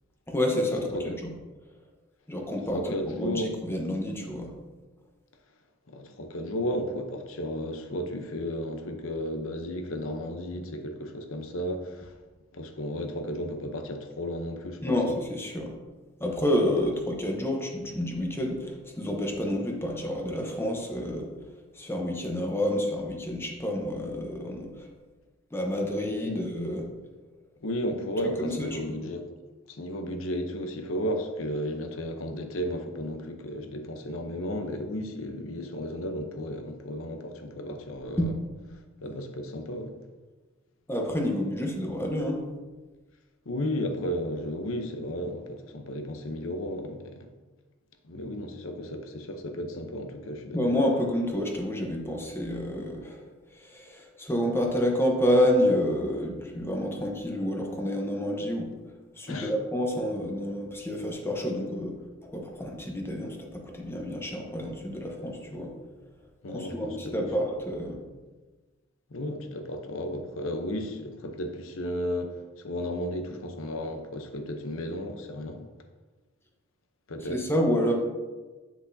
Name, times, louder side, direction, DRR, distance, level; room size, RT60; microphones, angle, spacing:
voice 1, 0.3-1.3 2.3-4.5 14.8-15.8 16.2-21.3 21.7-24.9 25.5-26.9 28.4-29.0 38.2-38.3 40.9-42.4 50.5-53.2 53.5-58.7 59.2-62.0 62.3-65.7 66.5-68.0 77.2-77.9, equal, 10° left, 1 dB, 0.9 m, -29 dB
voice 2, 2.7-3.5 5.9-12.1 12.5-15.0 26.2-26.4 27.6-29.3 29.7-38.3 39.0-39.9 43.5-47.3 48.0-50.6 59.3-59.5 66.4-67.3 69.1-72.3 72.6-75.7 77.1-77.4, equal, 75° left, 6 dB, 0.8 m, -33 dB
8.3 x 6.0 x 2.7 m, 1.3 s
head